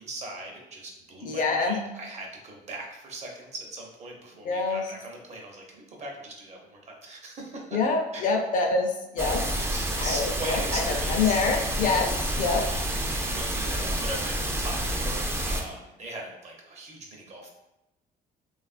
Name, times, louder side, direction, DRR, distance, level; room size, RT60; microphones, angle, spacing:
voice 1, 0.0-7.8 8.1-8.3 9.7-11.4 13.2-17.5, right 2 dB, 40° right, 0 dB, 0.7 m, -39 dB
voice 2, 1.2-1.9 4.4-4.9 7.7-9.4 10.0-12.7, left 4 dB, 50° left, 2 dB, 0.5 m, -26 dB
sound 1, 9.2-15.6, right 1 dB, 15° right, 0.4 m, -29 dB
3.2 x 2.3 x 2.4 m, 0.93 s
cardioid pair, 110°, 17 cm